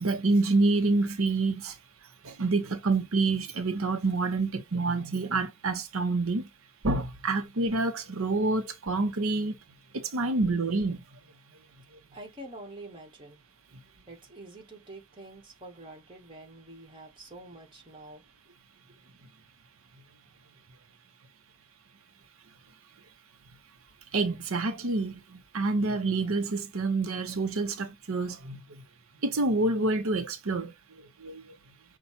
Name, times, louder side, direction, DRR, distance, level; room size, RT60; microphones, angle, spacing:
voice 1, 0.0-1.7 2.2-6.5 6.8-9.5 9.9-11.0 24.1-25.1 25.5-28.6 29.2-30.7 31.2-31.4, right 3 dB, 85° right, 0.8 m, -27 dB
voice 2, 12.1-13.4 14.1-18.5, right 1 dB, 20° right, 1.5 m, -47 dB
5.6 x 2.3 x 4.1 m
head